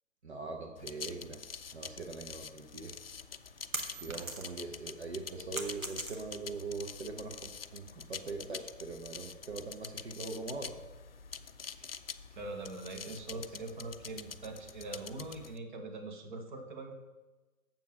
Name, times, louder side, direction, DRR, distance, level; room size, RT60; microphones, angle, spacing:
voice 1, 0.2-1.4 1.7-2.9 4.0-10.8 11.8-12.0 13.1-13.4, right 3 dB, 55° right, 2 dB, 1.1 m, -42 dB
sound 1, 0.8-15.6, left 6 dB, 50° left, 0.4 m, -46 dB
sound 2, 3.2-4.7 5.1-6.6, right 3 dB, 80° right, 1.6 m, -40 dB
voice 2, 12.3-16.9, right 2 dB, 35° right, 4 dB, 1.3 m, -42 dB
7.4 x 7.3 x 5.7 m, 1.1 s
figure-of-eight pair, 135°, 41 cm